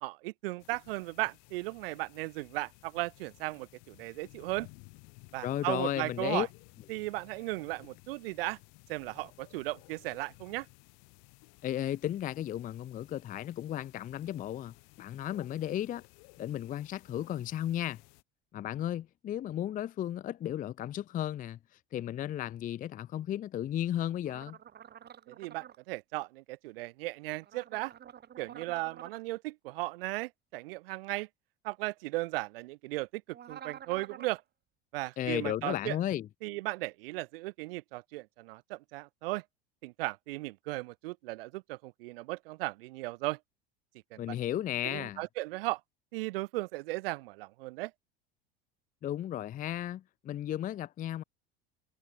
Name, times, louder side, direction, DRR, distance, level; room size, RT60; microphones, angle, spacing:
voice 1, 0.0-4.7 5.3-6.5 6.9-8.6 8.9-10.7 25.3-27.9 28.4-31.3 31.6-34.4 34.9-36.0 36.4-39.4 39.8-43.4 44.1-44.4 44.8-45.8 46.1-47.9, right 21 dB, 70° right, 0.6 m, -36 dB
sound 1, 0.6-18.2, left 38 dB, 60° left, 1.9 m, -57 dB
voice 2, 5.4-6.5 11.6-16.0 16.4-18.0 18.5-21.6 21.9-24.6 35.2-36.3 44.2-45.2 49.0-51.2, left 11 dB, 25° left, 0.5 m, -34 dB
sound 2, 24.2-25.8 27.4-29.2 33.3-34.4, right 9 dB, 35° right, 2.0 m, -49 dB
hypercardioid pair, 80°, 30 cm